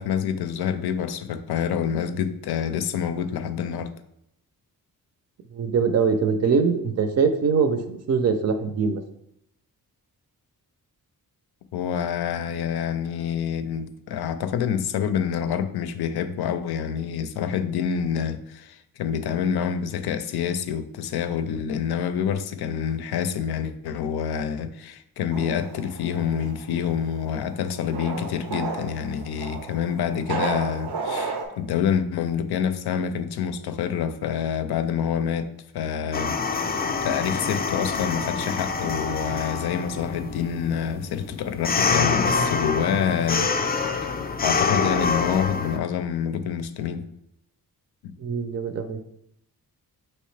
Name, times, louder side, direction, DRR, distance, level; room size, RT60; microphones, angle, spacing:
voice 1, 0.0-3.9 11.7-43.5 44.4-47.1 48.0-48.1, left 8 dB, 85° left, 0.5 m, -27 dB
voice 2, 5.5-9.0 48.2-49.0, right 5 dB, 45° right, 0.5 m, -23 dB
sound 1, 25.3-31.4, right 4 dB, 85° right, 0.8 m, -33 dB
sound 2, 36.1-45.8, left 5 dB, 25° left, 0.4 m, -26 dB
5.6 x 3.0 x 3.2 m
wide cardioid pair, 115°, 37 cm